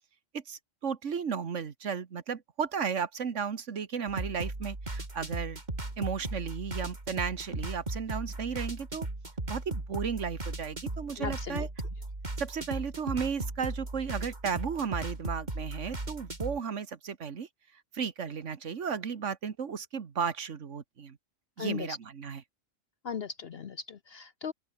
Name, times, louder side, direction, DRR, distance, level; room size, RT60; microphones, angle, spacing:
voice 1, 0.3-5.6 6.0-9.1 9.5-11.7 12.4-17.5 17.9-21.2 21.6-22.4, right 6 dB, 70° right, 1.7 m, -34 dB
sound 1, 4.1-16.6, right 2 dB, 35° right, 3.3 m, -37 dB
voice 2, 11.2-11.7 21.6-22.0 23.0-24.5, left 6 dB, 55° left, 1.0 m, -37 dB
open air
omnidirectional pair, 1.3 m